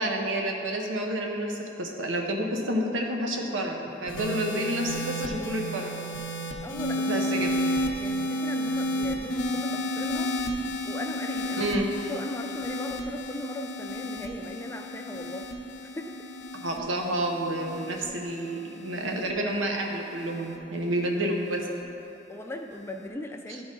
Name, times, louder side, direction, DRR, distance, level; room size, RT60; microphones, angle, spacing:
voice 1, 0.0-5.9 7.1-7.5 11.6-11.9 16.6-21.7, right 1 dB, 80° right, 1 dB, 0.8 m, -29 dB
sound 1, 4.1-20.6 21.5-21.8, equal, 75° left, 0.7 m, -32 dB
voice 2, 6.6-7.4 8.0-11.8 12.1-15.5 15.8-16.3 22.3-23.6, left 1 dB, 15° left, 3 dB, 0.4 m, -38 dB
11.5 x 3.9 x 3.8 m, 2.9 s
head